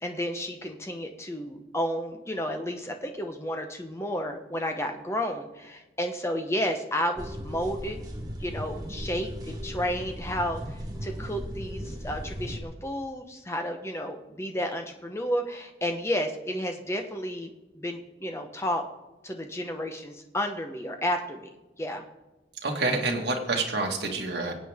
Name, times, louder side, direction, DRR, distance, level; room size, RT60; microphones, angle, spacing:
voice 1, 0.0-8.0 8.4-18.8 19.2-21.5 21.8-22.0, equal, 15° left, 4 dB, 1.1 m, -32 dB
sound 1, 7.2-12.6, equal, 20° right, 1.3 m, -37 dB
voice 2, 22.6-24.5, right 3 dB, 65° right, 1 dB, 2.0 m, -27 dB
24.0 x 8.4 x 3.6 m, 1.1 s
head